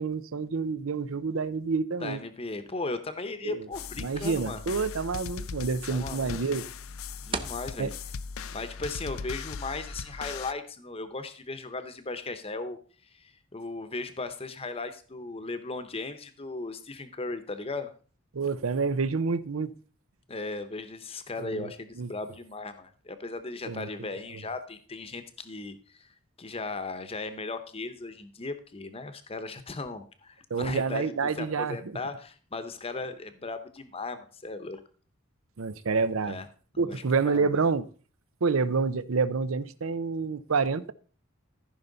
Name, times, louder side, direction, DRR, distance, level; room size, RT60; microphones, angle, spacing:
voice 1, 0.0-2.2 3.4-3.7 4.0-6.7 7.8-7.9 18.3-19.7 21.4-21.7 22.0-22.1 23.6-23.9 30.5-32.0 35.6-36.4 36.8-37.9 38.4-40.9, right 4 dB, 80° right, 0.6 m, -28 dB
voice 2, 2.0-4.6 5.9-6.5 7.2-7.9 8.5-12.8 13.1-17.9 20.3-26.1 26.4-34.8 36.2-36.5 36.7-37.5, left 3 dB, 30° left, 0.9 m, -37 dB
sound 1, 3.7-10.5, left 5 dB, 85° left, 0.5 m, -39 dB
sound 2, 5.0-10.4, right 3 dB, 25° right, 0.8 m, -43 dB
14.5 x 5.7 x 4.0 m
head